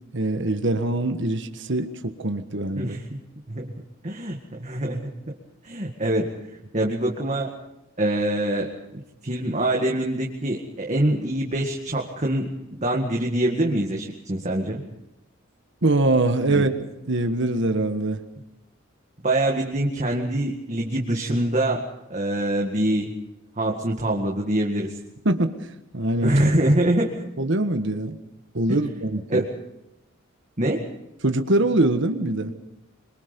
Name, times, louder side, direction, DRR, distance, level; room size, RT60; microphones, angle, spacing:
voice 1, 0.1-3.0 15.8-16.7 17.1-18.2 25.2-25.6 25.9-26.3 27.4-28.2 28.5-29.4 31.2-32.5, right 2 dB, 60° right, 7 dB, 1.5 m, -23 dB
voice 2, 4.0-5.3 5.6-6.3 6.7-7.6 8.0-12.5 12.8-14.8 16.5-16.7 19.2-21.8 22.1-23.1 23.6-24.9 26.2-27.2 28.7-28.8 29.3-29.6 30.6-30.9, right 1 dB, 35° right, 0 dB, 2.0 m, -24 dB
26.0 x 23.0 x 5.3 m, 0.88 s
head